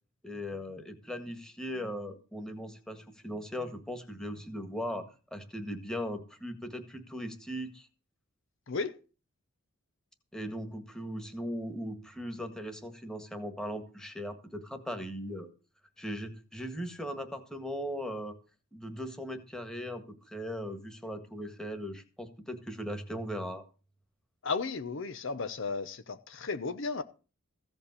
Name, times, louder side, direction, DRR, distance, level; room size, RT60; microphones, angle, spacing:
voice 1, 0.2-5.0 5.3-7.9 10.3-15.5 16.0-18.3 18.7-23.6, equal, 5° left, 6 dB, 1.6 m, -38 dB
voice 2, 8.7-9.0 24.4-27.0, left 4 dB, 55° left, 10 dB, 0.7 m, -34 dB
15.5 x 5.3 x 8.3 m, 0.35 s
head